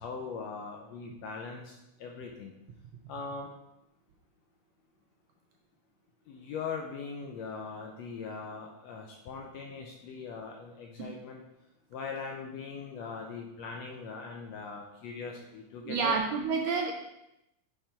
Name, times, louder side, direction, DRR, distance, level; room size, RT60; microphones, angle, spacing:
voice 1, 0.0-2.5 3.1-3.5 6.3-11.4 11.9-16.2, left 5 dB, 75° left, 1 dB, 1.6 m, -40 dB
voice 2, 15.8-16.9, right 5 dB, 75° right, 2 dB, 1.6 m, -29 dB
5.9 x 5.3 x 4.3 m, 0.88 s
omnidirectional pair, 3.6 m